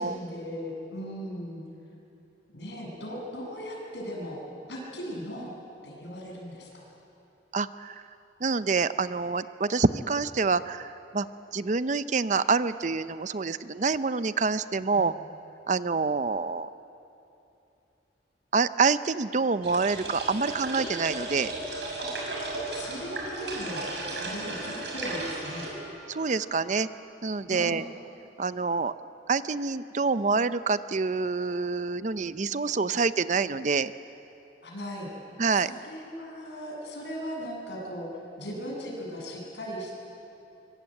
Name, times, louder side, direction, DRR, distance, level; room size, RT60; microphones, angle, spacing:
voice 1, 0.0-1.6 2.5-4.4 4.7-5.5 5.8-6.9 14.9-15.3 22.0-22.1 22.7-23.9 24.2-25.7 27.5-27.8 32.7-32.9 34.6-35.1 35.5-38.1 38.4-39.9, equal, 80° left, -2 dB, 7.4 m, -38 dB
voice 2, 7.5-8.0 8.4-11.3 11.5-15.1 15.7-16.7 18.5-21.5 26.1-26.9 27.2-27.8 28.4-28.9 29.3-33.9 35.4-35.7, right 4 dB, 45° right, 14 dB, 0.6 m, -27 dB
sound 1, 19.6-25.7, right 2 dB, 75° right, 6.8 m, -35 dB
sound 2, 21.2-26.9, right 1 dB, 55° left, 7.7 m, -52 dB
24.5 x 24.0 x 9.0 m, 2.9 s
head